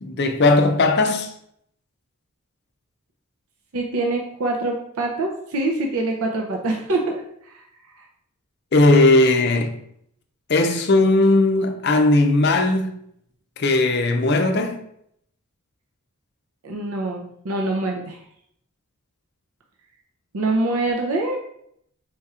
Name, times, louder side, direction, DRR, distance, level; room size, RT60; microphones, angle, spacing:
voice 1, 0.0-1.3 8.7-9.7 10.5-12.9 13.6-14.8, left 2 dB, 50° left, 0.5 m, -17 dB
voice 2, 3.7-7.6 16.6-18.2 20.3-21.4, right 2 dB, 75° right, 0.6 m, -25 dB
4.4 x 4.2 x 2.4 m
head